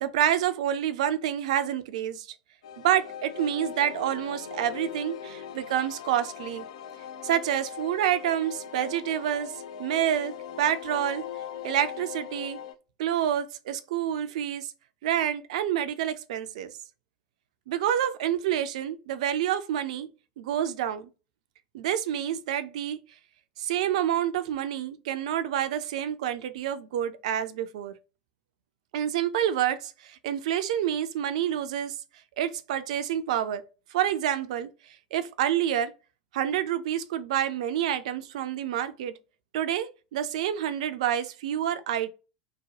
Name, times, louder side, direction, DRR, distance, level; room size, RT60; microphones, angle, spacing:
voice 1, 0.0-2.3 2.8-6.7 7.2-9.5 9.8-11.3 11.6-12.6 13.0-14.7 15.0-16.7 17.7-20.1 20.4-21.1 21.7-23.0 23.6-27.9 28.9-31.9 32.4-33.6 33.9-34.7 35.1-35.9 36.3-39.1 39.5-42.1, right 10 dB, 60° right, 0.4 m, -28 dB
sound 1, 2.6-12.7, left 8 dB, 60° left, 0.4 m, -40 dB
2.9 x 2.1 x 2.7 m
figure-of-eight pair, 85°, 4 cm